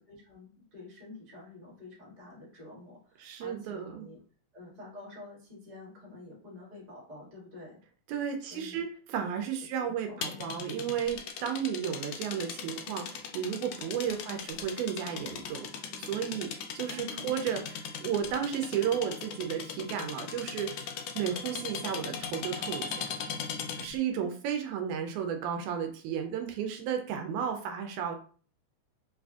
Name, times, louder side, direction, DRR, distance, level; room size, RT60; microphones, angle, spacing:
voice 1, 0.0-4.2 4.5-7.8 8.4-8.8 9.8-10.5 14.0-14.4 16.9-17.6 24.2-24.3, left 2 dB, 25° right, -6 dB, 1.0 m, -49 dB
voice 2, 3.2-4.1 8.1-20.9 21.2-23.2 23.8-28.2, right 8 dB, 80° right, 5 dB, 1.9 m, -33 dB
sound 1, 10.2-24.0, left 7 dB, 90° left, 1.4 m, -39 dB
4.8 x 2.5 x 2.3 m, 0.42 s
omnidirectional pair, 3.5 m